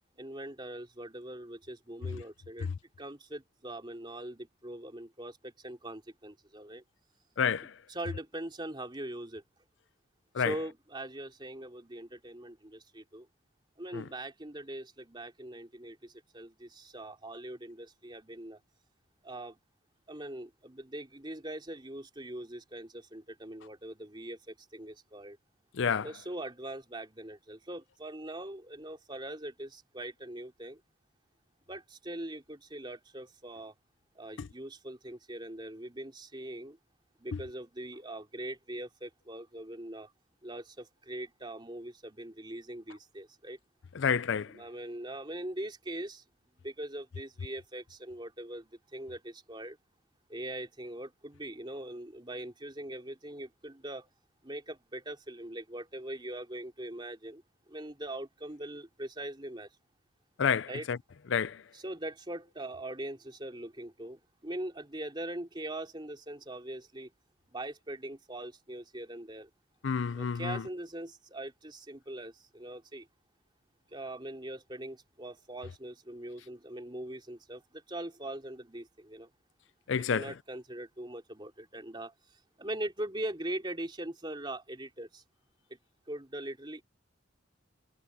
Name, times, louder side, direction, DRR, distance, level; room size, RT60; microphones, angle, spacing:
voice 1, 0.2-2.7 3.0-6.8 7.9-9.4 10.4-13.3 13.8-18.6 19.2-19.6 20.1-25.4 26.0-30.8 31.7-33.7 34.1-36.8 37.2-40.1 40.4-43.6 44.5-46.2 46.6-49.8 50.3-54.1 54.4-59.7 60.7-60.9 61.7-67.1 67.5-69.5 70.1-73.1 73.9-79.3 80.1-85.2 86.1-86.8, right 1 dB, 20° right, 3.0 m, -41 dB
voice 2, 7.4-7.7 10.3-10.5 13.9-14.0 25.8-26.1 34.4-34.5 43.9-44.6 60.4-61.0 61.3-61.6 69.8-70.6 79.9-80.3, left 6 dB, 60° left, 0.4 m, -29 dB
head